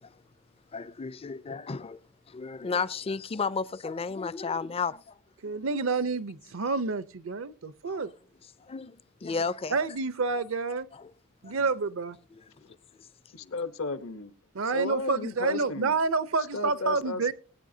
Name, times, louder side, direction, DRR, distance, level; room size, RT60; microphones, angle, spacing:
voice 1, 0.7-2.0 2.3-5.2 5.4-5.6 7.9-8.1 8.6-9.8 10.9-11.1 11.4-11.7 12.3-12.4 13.4-13.5, left 5 dB, 30° left, 0.4 m, -33 dB
voice 2, 5.4-8.1 9.7-10.9 11.4-12.2 14.5-17.3, right 4 dB, 70° right, 0.7 m, -28 dB
voice 3, 13.3-14.3 14.6-16.0 16.5-17.3, left 3 dB, 75° left, 1.0 m, -34 dB
21.5 x 8.6 x 2.8 m
head